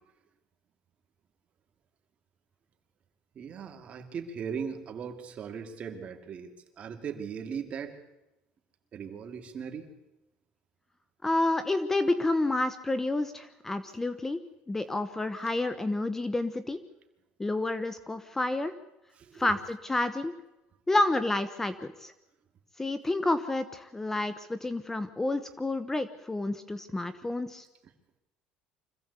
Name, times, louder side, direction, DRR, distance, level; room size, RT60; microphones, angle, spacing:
voice 1, 3.3-8.0 8.9-9.9 19.2-19.5, right 6 dB, 40° right, 5 dB, 2.6 m, -38 dB
voice 2, 11.2-14.4 14.7-16.8 17.4-18.7 19.4-20.3 20.9-22.1 22.8-27.6, left 2 dB, 10° left, 12 dB, 1.0 m, -29 dB
25.5 x 15.5 x 8.3 m, 0.96 s
cardioid pair, 130°, 3 cm